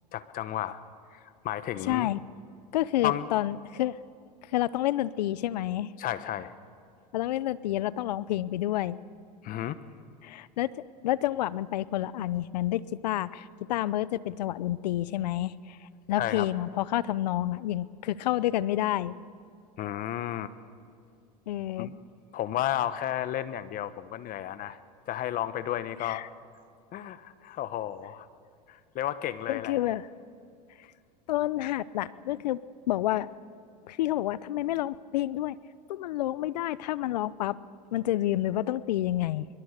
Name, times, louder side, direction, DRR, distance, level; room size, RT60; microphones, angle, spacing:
voice 1, 0.1-0.8 1.1-2.1 3.0-3.3 6.0-6.5 9.4-9.8 16.2-16.5 19.8-20.5 21.8-22.0 22.3-24.8 25.1-26.2 26.9-28.3 28.7-29.8, left 12 dB, 40° left, 13 dB, 1.2 m, -32 dB
voice 2, 1.9-2.2 2.7-4.0 4.5-5.9 7.1-9.0 10.2-10.7 11.0-15.8 16.1-19.2 21.5-21.9 26.0-26.2 29.5-30.1 31.3-32.6 32.9-33.3 33.9-35.6 35.9-37.6 37.9-39.5, left 14 dB, 80° left, 19 dB, 0.7 m, -29 dB
23.0 x 22.0 x 6.6 m, 2.4 s
hypercardioid pair, 100°, 21 cm